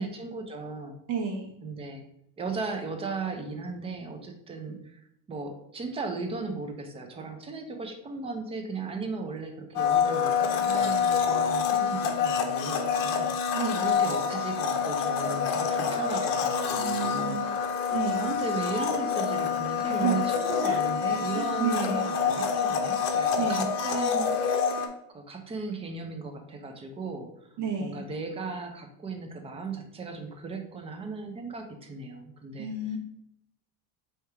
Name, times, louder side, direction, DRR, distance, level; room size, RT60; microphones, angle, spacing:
voice 1, 0.0-1.0 1.6-2.0 2.4-5.0 5.3-17.4 18.2-24.6 25.1-32.7, right 3 dB, 15° right, 4 dB, 0.4 m, -36 dB
voice 2, 1.1-1.5 13.5-14.0 16.8-17.5 17.9-18.2 19.9-20.2 20.6-20.8 21.3-22.0 23.4-23.6 27.6-28.0 32.6-33.0, right 5 dB, 65° right, 2 dB, 1.2 m, -31 dB
Domestic sounds home sounds, 9.8-24.9, left 6 dB, 50° left, 0.7 m, -27 dB
3.4 x 2.8 x 4.4 m, 0.78 s
cardioid pair, 145°, 42 cm